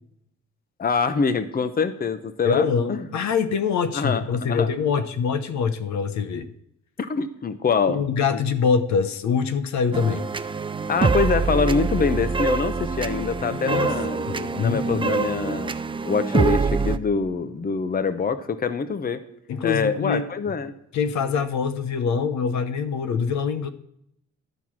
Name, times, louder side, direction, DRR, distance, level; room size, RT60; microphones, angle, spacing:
voice 1, 0.8-3.0 3.9-4.7 7.0-8.0 10.9-15.7 16.1-19.2 19.6-20.7, left 5 dB, 30° left, 11 dB, 0.8 m, -25 dB
voice 2, 2.4-6.5 7.9-10.3 13.5-14.0 14.3-15.2 19.5-20.2 20.9-23.7, left 6 dB, 65° left, 10 dB, 0.8 m, -24 dB
sound 1, 9.9-17.0, right 4 dB, 15° right, 0.4 m, -25 dB
12.0 x 4.6 x 7.3 m, 0.75 s
cardioid pair, 90°, 30 cm